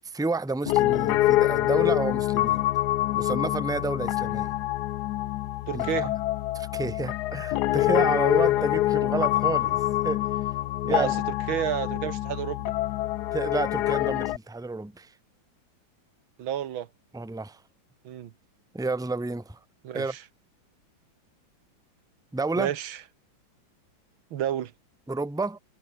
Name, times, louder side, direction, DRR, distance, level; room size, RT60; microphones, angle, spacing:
voice 1, 0.0-2.6 3.1-4.5 5.7-6.1 6.5-10.3 10.8-11.2 13.3-15.1 17.1-17.6 18.7-19.6 19.9-20.1 22.3-22.7 25.1-25.6, right 3 dB, ahead, 1.2 m, -30 dB
Piano, 0.7-14.4, left 16 dB, 75° left, 1.0 m, -25 dB
voice 2, 5.7-6.1 8.5-8.6 10.8-11.2 11.5-12.7 16.4-16.9 18.1-18.3 19.8-20.2 22.6-23.0 24.3-24.7, right 10 dB, 85° right, 2.0 m, -30 dB
omnidirectional pair, 2.1 m